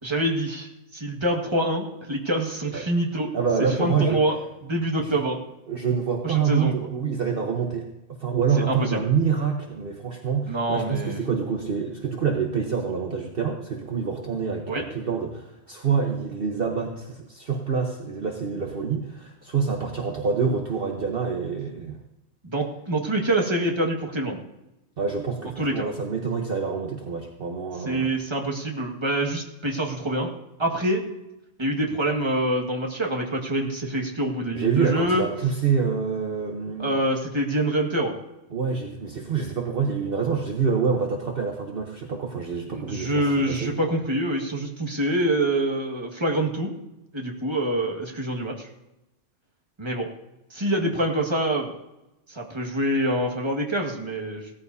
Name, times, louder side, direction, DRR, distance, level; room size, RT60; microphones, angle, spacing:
voice 1, 0.0-3.3 3.8-4.4 4.6-5.4 6.2-6.7 8.7-9.0 10.5-11.2 14.7-14.8 22.4-24.4 25.6-25.9 27.9-30.3 30.6-31.0 31.6-35.2 36.8-38.2 42.7-46.7 47.1-48.7 49.8-50.1 50.5-51.7 52.3-54.5, right 1 dB, 20° right, 0 dB, 1.8 m, -26 dB
voice 2, 3.3-4.2 5.0-5.2 5.7-7.9 8.2-22.0 25.0-28.1 34.5-37.1 38.5-43.7, right 6 dB, 45° right, 1 dB, 1.3 m, -26 dB
17.5 x 14.0 x 2.8 m, 0.95 s
omnidirectional pair, 1.4 m